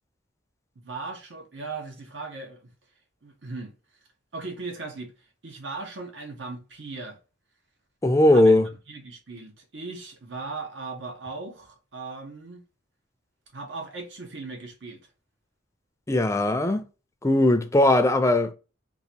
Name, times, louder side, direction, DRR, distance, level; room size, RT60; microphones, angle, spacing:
voice 1, 0.8-2.7 3.2-3.7 4.3-5.1 5.4-7.2 8.3-8.6 8.9-12.6 13.5-15.0, right 3 dB, 75° right, 1.0 m, -38 dB
voice 2, 8.0-8.7 16.1-16.8 17.2-18.5, left 1 dB, 15° left, 0.4 m, -19 dB
3.9 x 2.5 x 2.8 m
head